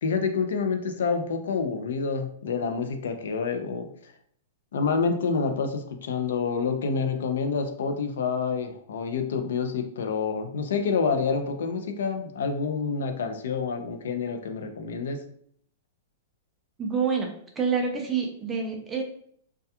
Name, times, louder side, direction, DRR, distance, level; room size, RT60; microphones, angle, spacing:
voice 1, 0.0-3.9 4.7-15.2, left 5 dB, 75° left, 6 dB, 0.4 m, -28 dB
voice 2, 16.8-17.3 17.6-19.0, right 5 dB, 10° right, 1 dB, 0.3 m, -27 dB
2.2 x 2.2 x 2.8 m, 0.63 s
supercardioid pair, 170°, 0 cm